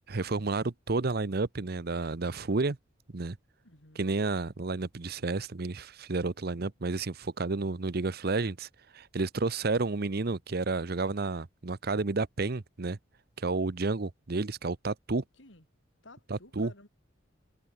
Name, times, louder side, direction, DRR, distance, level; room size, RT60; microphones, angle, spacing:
voice 1, 0.1-2.8 3.1-3.4 4.0-8.7 8.9-13.0 13.4-15.2 16.3-16.7, right 3 dB, 55° right, 0.8 m, -31 dB
voice 2, 3.6-4.1 15.4-15.6 16.0-16.9, left 2 dB, 75° left, 6.4 m, -54 dB
head